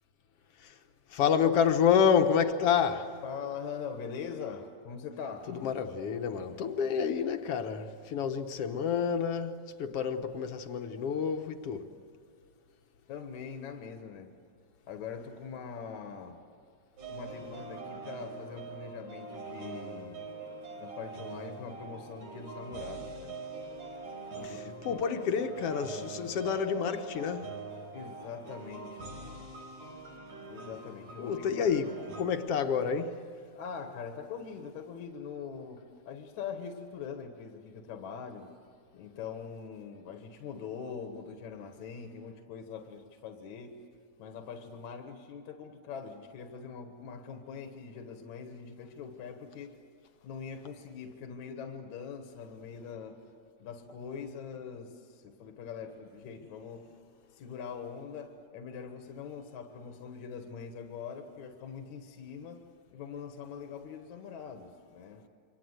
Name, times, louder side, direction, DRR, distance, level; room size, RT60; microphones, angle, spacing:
voice 1, 1.1-3.1 5.6-11.9 24.4-24.6 24.9-27.5 31.2-33.2, left 7 dB, 60° left, 1.9 m, -29 dB
voice 2, 3.2-5.7 13.1-14.3 14.9-16.4 17.1-20.2 20.8-23.4 24.3-25.0 27.9-29.1 30.5-31.4 31.8-32.0 33.5-38.5 38.9-43.8 44.2-49.7 50.2-53.2 53.6-56.9 57.3-62.6 62.9-65.3, left 6 dB, 80° left, 2.7 m, -43 dB
sound 1, 17.0-32.2, right 3 dB, 80° right, 5.5 m, -43 dB
28.0 x 24.5 x 8.0 m
omnidirectional pair, 3.3 m